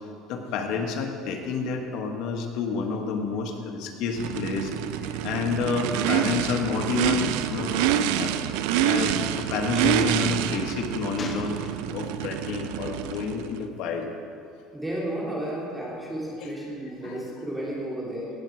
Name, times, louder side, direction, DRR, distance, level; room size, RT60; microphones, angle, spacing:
voice 1, 0.3-4.7 5.0-8.3 8.8-11.6 11.9-14.1 16.4-16.5 17.0-17.2, left 5 dB, 65° left, 3 dB, 1.5 m, -29 dB
Race car auto racing / Idling / Accelerating revving vroom, 4.2-13.6, right 10 dB, 80° right, 0.5 m, -27 dB
Gunshot gunfire, 9.4-9.6 11.2-12.2 13.0-13.3, left 4 dB, 30° left, 1.0 m, -40 dB
voice 2, 14.7-18.3, right 1 dB, 5° right, -6 dB, 3.0 m, -32 dB
17.5 x 7.4 x 4.7 m, 2.5 s
cardioid pair, 125°, 0 cm